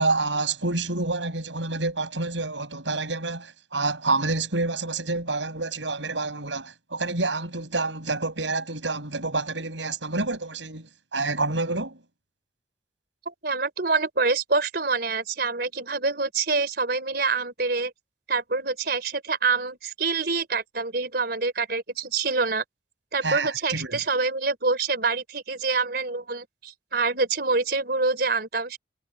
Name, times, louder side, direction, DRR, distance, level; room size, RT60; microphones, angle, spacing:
voice 1, 0.0-12.0 23.2-24.0, right 3 dB, 90° right, 7.6 m, -28 dB
voice 2, 13.3-17.9 18.3-22.6 23.1-28.8, right 4 dB, 55° right, 4.1 m, -26 dB
head